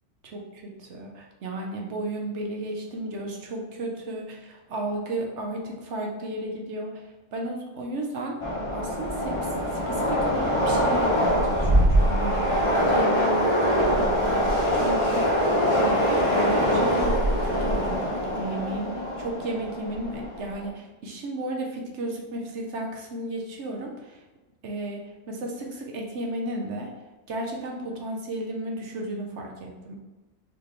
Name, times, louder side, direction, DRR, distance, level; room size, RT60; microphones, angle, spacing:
voice 1, 0.2-8.4 8.7-13.6 13.9-15.4 15.7-24.2 24.6-26.9 27.3-30.0, right 1 dB, 60° right, 0 dB, 1.0 m, -34 dB
Train, 8.4-20.7, equal, 30° left, 0.7 m, -23 dB
4.3 x 3.8 x 3.2 m, 1.1 s
omnidirectional pair, 1.5 m